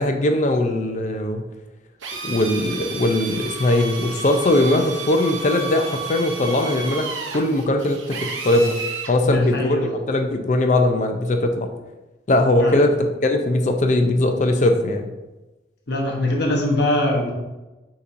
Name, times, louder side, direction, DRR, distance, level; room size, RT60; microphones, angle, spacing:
voice 1, 0.0-1.4 2.2-7.1 7.3-8.8 9.1-9.8 10.1-11.7 12.3-15.1, left 1 dB, 40° left, 5 dB, 0.4 m, -20 dB
Drill, 2.0-9.2, right 4 dB, 80° right, 0.7 m, -32 dB
voice 2, 9.2-10.0 12.6-12.8 15.9-17.3, left 1 dB, 60° left, -1 dB, 0.9 m, -22 dB
6.6 x 2.9 x 2.5 m, 1.1 s
head